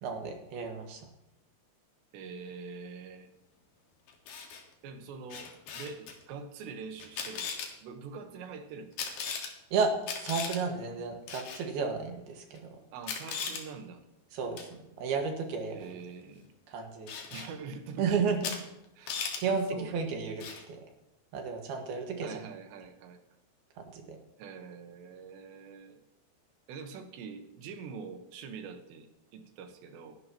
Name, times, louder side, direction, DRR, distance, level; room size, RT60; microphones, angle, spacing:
voice 1, 0.0-1.1 9.7-9.9 10.2-12.6 14.3-14.7 15.0-15.9 16.7-17.1 18.0-18.5 19.4-20.8 21.3-22.3 23.8-24.2, right 5 dB, 70° right, 3 dB, 3.4 m, -32 dB
voice 2, 2.1-3.3 4.8-7.5 7.8-9.0 12.9-14.0 15.7-16.5 17.3-18.6 19.0-20.1 22.2-23.2 24.4-26.0 26.7-30.2, right 5 dB, 90° right, 6 dB, 3.5 m, -44 dB
Camera, 4.1-4.6 5.3-6.1 7.0-7.7 9.0-9.5 10.0-10.6 11.3-11.6 12.6-12.7 13.0-13.6 14.6-14.7 17.1-17.5 18.4-18.6 18.8-19.4 20.4-20.7, left 6 dB, 65° left, 3.3 m, -37 dB
21.0 x 11.0 x 2.9 m, 0.85 s
omnidirectional pair, 4.9 m